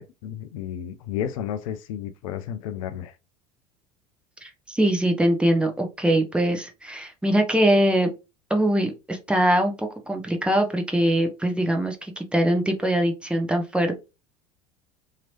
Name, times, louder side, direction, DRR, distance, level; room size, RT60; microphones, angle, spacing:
voice 1, 0.0-3.1, left 10 dB, 60° left, 0.4 m, -32 dB
voice 2, 4.4-8.1 8.5-14.0, right 1 dB, 5° right, 0.8 m, -22 dB
2.9 x 2.8 x 2.8 m
figure-of-eight pair, 70°, 19 cm